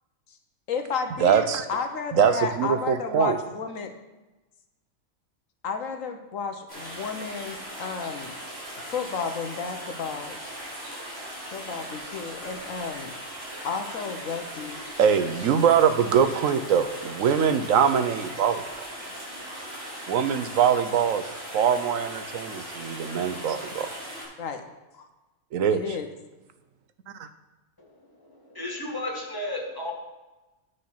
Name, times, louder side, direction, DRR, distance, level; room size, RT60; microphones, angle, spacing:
voice 1, 0.7-3.9 5.6-8.3 8.9-10.4 11.5-13.1 13.6-14.8 19.1-19.5 19.7-19.8 22.4-22.5 23.3-23.4 23.7-23.8 24.4-24.6 24.9-25.1 25.7-26.1, left 5 dB, 75° left, 6 dB, 1.3 m, -32 dB
voice 2, 1.2-1.7 2.1-3.4 15.0-18.6 20.1-21.2 21.5-23.9 25.5-25.8, right 7 dB, 75° right, 10 dB, 1.1 m, -22 dB
sound 1, 6.7-24.2, equal, 50° right, 4.4 m, -39 dB
voice 3, 28.4-29.9, left 1 dB, 15° left, -2 dB, 1.9 m, -33 dB
9.7 x 6.6 x 5.7 m, 1.1 s
omnidirectional pair, 1.4 m